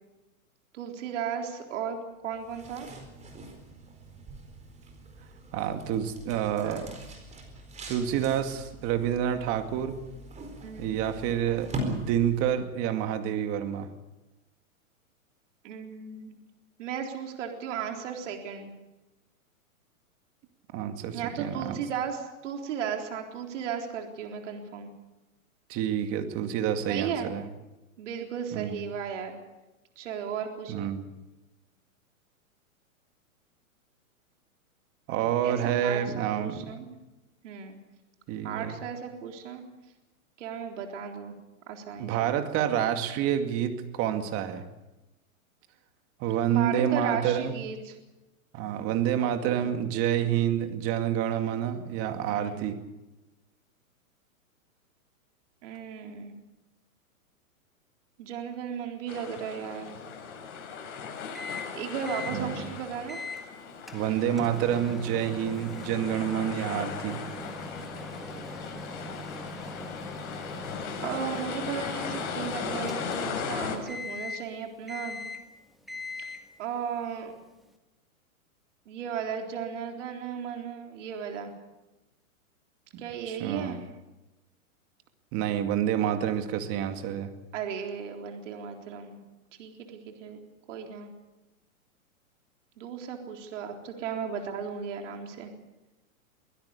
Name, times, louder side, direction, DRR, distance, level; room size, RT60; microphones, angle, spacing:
voice 1, 0.7-2.0 2.2-2.9 6.5-6.8 10.6-11.0 15.6-16.4 16.8-18.7 21.1-24.9 26.9-27.3 28.0-29.4 30.0-30.9 35.4-36.9 37.4-37.8 38.4-39.6 40.4-41.4 41.7-42.4 46.5-47.9 49.2-49.7 51.4-51.7 52.3-52.7 55.6-56.4 58.2-60.0 61.8-63.2 71.0-75.2 76.6-77.3 78.9-81.5 83.0-83.8 87.5-89.2 89.6-90.4 90.7-91.1 92.8-95.5, right 7 dB, 60° right, 3 dB, 3.9 m, -35 dB
sound 1, 2.3-12.7, equal, 15° right, 4.3 m, -42 dB
voice 2, 5.5-7.0 7.9-9.9 10.8-13.9 20.7-21.8 25.7-27.5 28.5-28.8 30.7-31.1 35.1-36.7 38.3-38.8 42.0-44.6 46.2-47.6 48.5-52.8 62.3-62.7 63.9-67.2 83.3-83.8 85.3-87.3, right 10 dB, 35° right, 7 dB, 2.3 m, -28 dB
sound 2, 59.1-73.8, left 6 dB, 55° left, 6.6 m, -38 dB
Microwave oven, 61.4-61.8 62.1-62.4 63.1-63.4 63.9-73.5 73.9-74.5 74.9-75.5 75.9-76.5, left 2 dB, ahead, 1.5 m, -41 dB
24.0 x 16.5 x 8.4 m, 1.0 s
hypercardioid pair, 135°, 42 cm